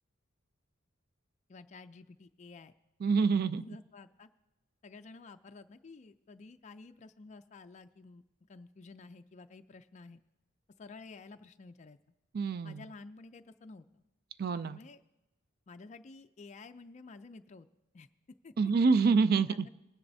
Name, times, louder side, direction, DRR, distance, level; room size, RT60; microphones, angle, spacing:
voice 1, 1.5-2.7 3.6-4.3 4.8-8.2 8.5-10.2 10.8-12.0 12.6-14.0 14.6-15.0 15.7-17.7 17.9-18.1 18.4-18.5 19.6-19.7, left 3 dB, 35° left, 7 dB, 0.4 m, -51 dB
voice 2, 3.0-3.6 12.3-12.9 14.4-14.8 18.6-19.7, right 4 dB, 45° right, 16 dB, 0.3 m, -27 dB
20.0 x 10.0 x 2.7 m, 0.98 s
head